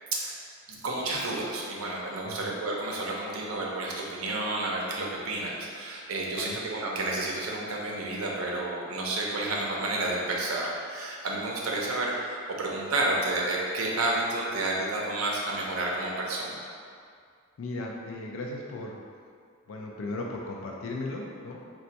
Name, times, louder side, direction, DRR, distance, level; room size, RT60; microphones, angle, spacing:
voice 1, 0.7-16.6, right 2 dB, 75° right, -2 dB, 0.6 m, -30 dB
voice 2, 17.6-19.0 19.7-21.6, left 2 dB, 65° left, 0 dB, 0.3 m, -36 dB
4.0 x 2.2 x 2.5 m, 2.2 s
head